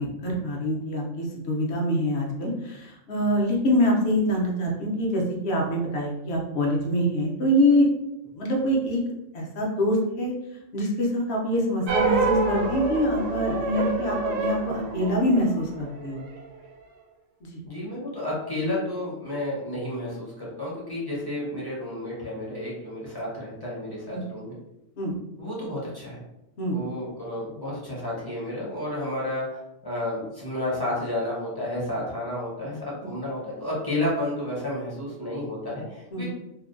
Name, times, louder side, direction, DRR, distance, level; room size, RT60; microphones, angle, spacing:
voice 1, 0.0-7.9 8.3-9.0 9.3-10.3 10.7-16.2 17.4-17.6 24.1-24.2 25.0-25.1 26.6-26.8 36.1-36.2, equal, 60° left, -1 dB, 0.8 m, -25 dB
sound 1, 11.9-16.4, right 3 dB, 85° right, 1.0 m, -27 dB
voice 2, 17.7-24.6 25.4-26.2 26.7-36.2, left 1 dB, 25° left, -7 dB, 0.6 m, -31 dB
2.6 x 2.1 x 2.4 m, 0.89 s
omnidirectional pair, 1.3 m